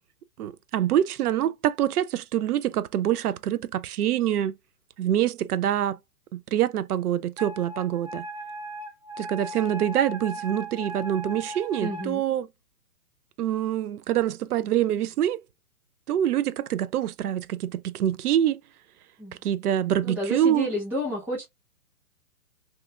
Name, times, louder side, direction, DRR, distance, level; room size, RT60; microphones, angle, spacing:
voice 1, 0.4-4.6 5.0-6.0 6.3-8.2 9.2-12.5 13.4-15.4 16.1-18.6 19.4-20.7, right 11 dB, 75° right, 0.5 m, -25 dB
Wind instrument woodwind instrument, 7.4-12.1, right 2 dB, 50° right, 1.4 m, -37 dB
voice 2, 11.8-12.2 19.2-19.4 20.0-21.4, left 1 dB, 5° right, 1.1 m, -30 dB
2.7 x 2.4 x 2.3 m
hypercardioid pair, 145°, 45 cm